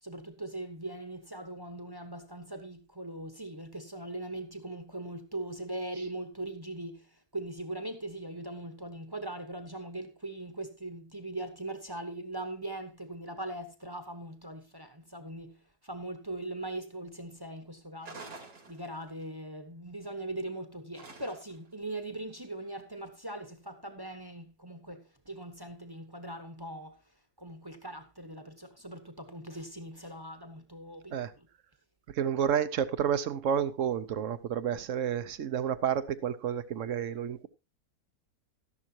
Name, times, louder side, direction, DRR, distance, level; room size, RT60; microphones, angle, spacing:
voice 1, 0.0-31.5, right 1 dB, 15° right, 1.0 m, -40 dB
sound 1, 18.0-19.2 20.9-21.7, right 3 dB, 85° right, 3.1 m, -47 dB
voice 2, 32.1-37.5, right 8 dB, 60° right, 1.0 m, -30 dB
13.0 x 11.0 x 2.8 m
omnidirectional pair, 1.7 m